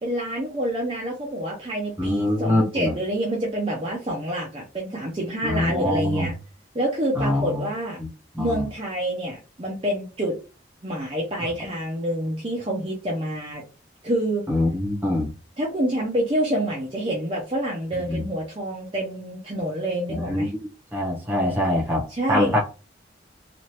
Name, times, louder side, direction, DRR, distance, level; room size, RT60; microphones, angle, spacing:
voice 1, 0.0-6.3 6.7-8.0 8.4-10.4 10.8-13.6 14.0-14.5 15.6-20.5 22.1-22.5, right 1 dB, 30° right, 0.6 m, -27 dB
voice 2, 2.0-2.9 5.4-6.3 7.1-7.6 8.0-8.1 8.3-8.6 14.5-15.3 18.1-18.2 20.1-20.5 20.9-22.6, left 1 dB, 10° right, 0.9 m, -24 dB
3.1 x 2.5 x 2.8 m
head